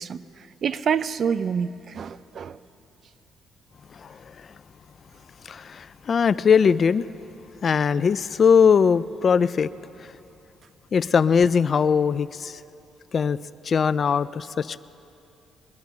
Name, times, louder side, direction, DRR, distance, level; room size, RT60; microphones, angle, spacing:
voice 1, 0.0-2.6, right 7 dB, 55° right, 0.4 m, -27 dB
voice 2, 5.4-7.0 7.6-9.7 10.9-12.6 13.1-13.4 13.6-14.8, left 6 dB, 50° left, 0.3 m, -20 dB
21.5 x 10.5 x 5.8 m
cardioid pair, 90°, 0 cm